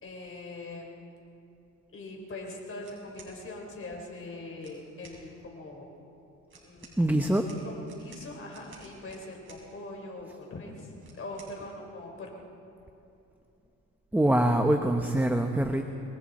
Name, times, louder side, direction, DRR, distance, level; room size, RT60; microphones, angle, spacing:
voice 1, 0.0-0.9 1.9-5.9 6.6-7.0 7.6-12.3, left 2 dB, 45° left, 0 dB, 4.7 m, -42 dB
sound 1, 2.8-3.3 4.5-5.2 6.5-9.6 11.0-11.5, right 4 dB, 40° right, 6.5 m, -53 dB
voice 2, 7.0-7.5 14.1-15.8, right 1 dB, 5° right, 5 dB, 1.0 m, -24 dB
27.5 x 22.0 x 4.4 m, 2.8 s
cardioid pair, 90°, 30 cm